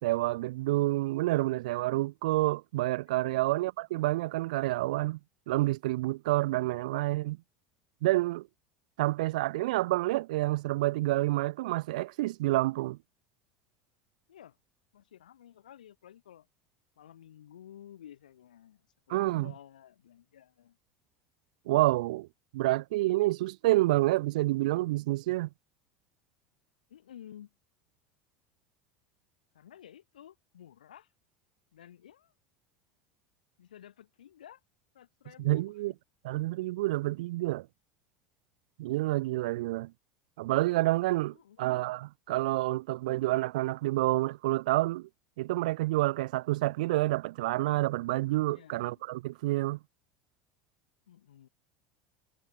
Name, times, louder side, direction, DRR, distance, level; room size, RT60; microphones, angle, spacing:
voice 1, 0.0-5.2 5.5-7.4 8.0-8.4 9.0-13.0 19.1-19.5 21.7-22.3 22.5-25.5 35.4-35.9 36.2-37.7 38.8-39.9 40.4-45.1 45.4-49.8, right 18 dB, 70° right, 1.4 m, -28 dB
voice 2, 3.2-3.5 14.3-14.6 14.9-16.5 17.0-20.8 26.9-27.5 29.5-31.1 31.7-32.3 33.6-34.6 34.9-35.9 41.3-41.7 48.5-49.0 51.1-51.5, left 10 dB, 80° left, 6.5 m, -53 dB
hypercardioid pair, 80°, 4 cm